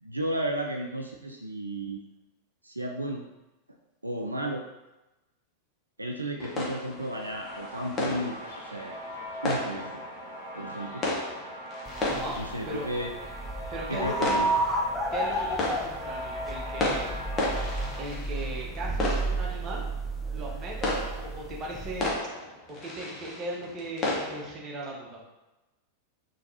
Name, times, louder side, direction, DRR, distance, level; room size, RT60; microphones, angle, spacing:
voice 1, 0.0-2.0 2.6-3.3 3.7-3.8 4.0-4.6 6.0-9.0 9.4-9.9 10.5-11.1 12.4-13.2 13.9-14.5, right 1 dB, 85° right, 1 dB, 0.3 m, -33 dB
sound 1, 6.4-24.5, left 2 dB, 25° left, 1.0 m, -34 dB
sound 2, 7.4-18.0, equal, 70° left, 1.1 m, -40 dB
sound 3, 11.9-22.1, right 2 dB, 10° left, 0.4 m, -32 dB
voice 2, 12.1-12.4 12.6-12.9 13.7-14.5 15.1-17.1 18.0-19.8 20.3-22.1 22.7-25.2, right 2 dB, 30° right, -3 dB, 1.0 m, -37 dB
4.0 x 3.0 x 2.7 m, 1.0 s
figure-of-eight pair, 90°, 0 cm